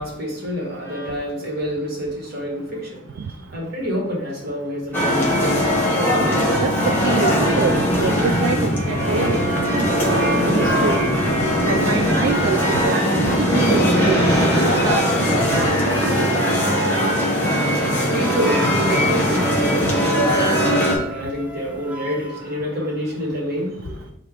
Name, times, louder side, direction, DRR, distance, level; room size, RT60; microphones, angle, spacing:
voice 1, 0.0-6.0 17.5-24.1, equal, 55° right, -3 dB, 1.7 m, -28 dB
sound 1, 4.9-21.0, equal, 10° left, 1.1 m, -19 dB
sound 2, 6.2-12.3, left 3 dB, 65° left, 0.4 m, -30 dB
voice 2, 6.6-11.0 11.7-16.6, right 5 dB, 75° right, 6 dB, 0.3 m, -26 dB
Wind instrument woodwind instrument, 18.2-22.4, right 6 dB, 10° right, 0.5 m, -34 dB
4.4 x 2.5 x 4.8 m, 0.74 s
head